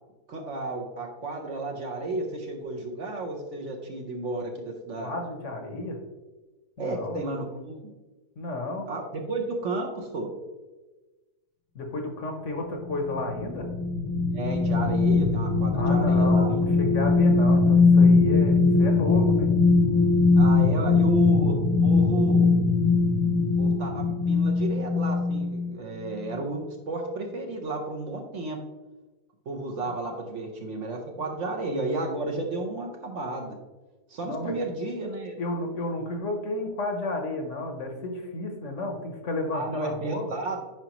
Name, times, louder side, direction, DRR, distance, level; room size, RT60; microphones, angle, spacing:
voice 1, 0.3-5.2 6.8-7.8 8.9-10.3 14.3-16.6 20.4-21.5 21.8-22.5 23.6-28.6 29.5-33.6 34.1-35.4 39.5-40.6, right 2 dB, 55° right, 2 dB, 1.0 m, -32 dB
voice 2, 5.0-6.0 6.8-7.2 8.4-8.9 11.7-13.7 15.7-19.5 29.8-29.9 34.2-34.5 35.4-40.3, left 2 dB, 55° left, 3 dB, 1.0 m, -32 dB
sound 1, 12.8-25.8 26.2-26.4, left 3 dB, 80° left, 1.3 m, -21 dB
9.1 x 4.9 x 3.0 m, 1.2 s
omnidirectional pair, 1.7 m